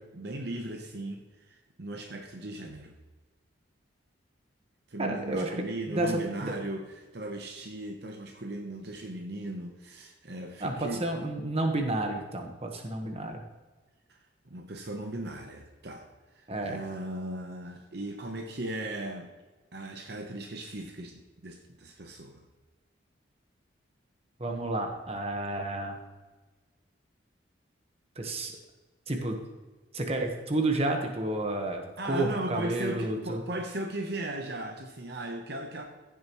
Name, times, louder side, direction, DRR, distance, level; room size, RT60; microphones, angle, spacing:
voice 1, 0.0-3.0 4.9-11.1 14.1-14.2 14.5-16.1 16.3-19.3 19.7-22.4 32.0-35.8, right 1 dB, 55° right, 3 dB, 0.9 m, -37 dB
voice 2, 5.0-6.5 10.6-13.4 16.5-16.8 24.4-26.0 28.2-28.5 29.1-29.4 29.9-33.4, right 2 dB, 30° right, 3 dB, 1.2 m, -31 dB
15.5 x 7.4 x 3.1 m, 1.2 s
head